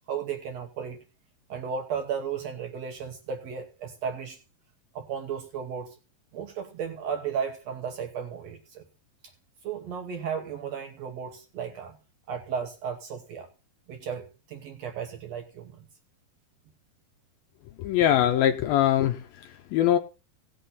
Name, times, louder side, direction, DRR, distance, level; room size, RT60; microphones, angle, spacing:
voice 1, 0.1-1.0 1.5-4.4 4.9-6.0 6.3-8.8 9.2-9.3 9.6-12.0 12.3-13.5 13.9-15.9, right 7 dB, 80° right, 1.5 m, -34 dB
voice 2, 17.8-20.0, left 11 dB, 75° left, 2.2 m, -23 dB
17.5 x 6.5 x 4.1 m
omnidirectional pair, 4.7 m